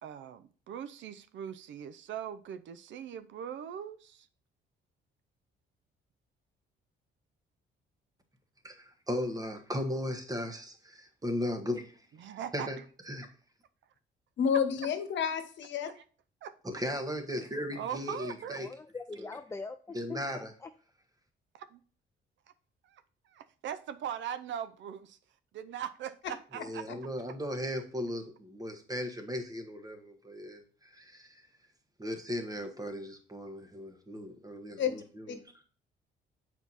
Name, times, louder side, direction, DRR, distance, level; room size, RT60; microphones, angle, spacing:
voice 1, 0.0-4.3 12.2-12.8 15.8-15.9 16.4-16.5 17.8-18.6 21.5-21.8 22.8-25.2 25.5-26.8, right 9 dB, 70° right, 0.6 m, -40 dB
voice 2, 8.6-12.0 12.5-12.8 13.1-13.3 16.7-18.7 19.2-19.3 19.9-20.5 26.5-31.5 32.0-34.8, left 1 dB, 20° right, 1.4 m, -37 dB
voice 3, 14.4-15.9 34.8-34.9 35.3-35.4, left 7 dB, 65° left, 1.1 m, -29 dB
voice 4, 18.5-20.7, left 4 dB, 15° left, 0.4 m, -43 dB
7.0 x 4.5 x 4.1 m
cardioid pair, 90°, 20 cm